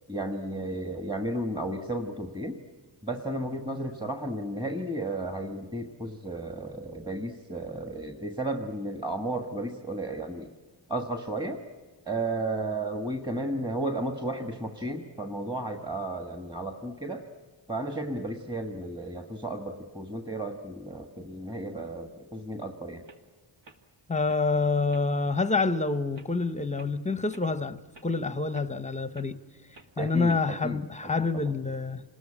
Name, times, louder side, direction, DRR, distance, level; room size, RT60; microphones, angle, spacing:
voice 1, 0.1-2.6 3.0-10.5 10.9-11.6 12.1-17.2 17.7-23.1 30.0-31.5, right 1 dB, 10° right, 1.4 m, -33 dB
sound 1, 22.6-22.7 23.0-23.2 23.6-23.8 24.3-24.4 24.9-25.1 25.5-25.7 26.1-26.4 26.8-26.9 27.3-27.5 27.9-28.1 28.5-28.7 29.1-29.3 29.7-29.9 30.3-30.5, right 3 dB, 60° right, 2.4 m, -53 dB
voice 2, 24.1-29.4 30.0-32.0, left 3 dB, 15° left, 0.8 m, -27 dB
27.5 x 20.5 x 9.9 m
wide cardioid pair, 150°, 48 cm